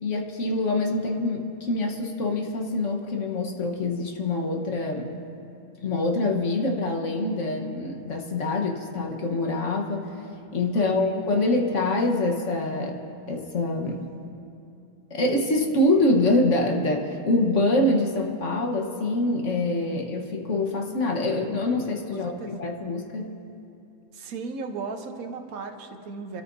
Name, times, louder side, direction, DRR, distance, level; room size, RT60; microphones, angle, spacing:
voice 1, 0.0-5.2 5.8-10.1 10.5-13.0 13.3-14.1 15.1-23.3, left 2 dB, 55° left, 1 dB, 1.5 m, -25 dB
voice 2, 10.7-11.2 22.1-22.5 24.1-26.4, right 4 dB, 75° right, 5 dB, 1.4 m, -36 dB
28.0 x 13.5 x 2.7 m, 2.8 s
omnidirectional pair, 1.5 m